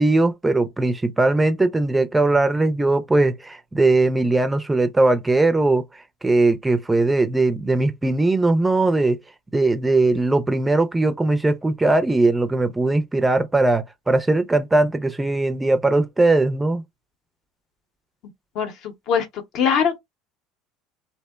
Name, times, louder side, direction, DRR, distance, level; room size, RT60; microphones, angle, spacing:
voice 1, 0.0-9.2 9.5-16.8, right 2 dB, 15° right, 0.4 m, -19 dB
voice 2, 18.5-20.0, left 7 dB, 60° left, 0.6 m, -22 dB
2.7 x 2.0 x 2.2 m
supercardioid pair, 90°, 0 cm